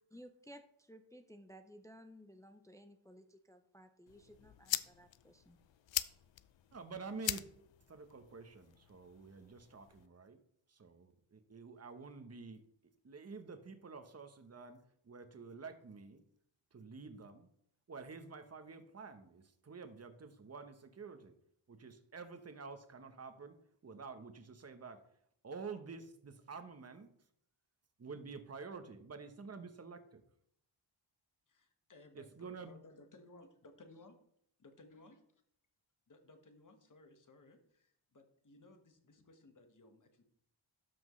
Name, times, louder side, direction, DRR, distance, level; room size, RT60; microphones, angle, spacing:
voice 1, 0.1-5.6, equal, 5° left, 7 dB, 0.5 m, -57 dB
sound 1, 4.1-10.1, left 13 dB, 70° left, 0.5 m, -43 dB
voice 2, 6.7-7.4 7.9-10.4 10.7-12.6 13.0-14.8 15.0-16.2 16.7-17.5 17.9-21.3 21.7-23.6 23.8-25.0 25.4-27.1 28.0-30.2 32.1-32.7, right 4 dB, 30° right, 8 dB, 1.0 m, -49 dB
voice 3, 31.5-34.2 34.6-35.4 36.1-40.2, left 2 dB, 40° left, 5 dB, 1.5 m, -60 dB
12.5 x 5.9 x 3.2 m, 0.70 s
wide cardioid pair, 115°, 48 cm